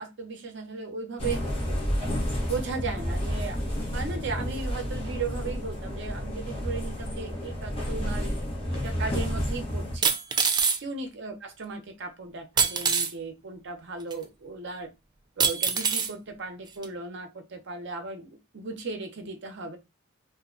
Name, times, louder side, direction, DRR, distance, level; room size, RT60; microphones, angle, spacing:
voice 1, 0.0-1.4 2.5-3.6 3.9-8.3 8.8-10.1 10.8-14.9 15.4-19.8, right 4 dB, 60° right, 5 dB, 0.7 m, -36 dB
sound 1, 1.2-10.0, equal, 30° left, 1.0 m, -30 dB
sound 2, 8.7-8.8 10.0-10.8 12.6-13.1 14.1-14.2 15.4-16.1 16.8-16.9, right 6 dB, 20° right, 0.3 m, -24 dB
2.7 x 2.2 x 3.7 m, 0.23 s
head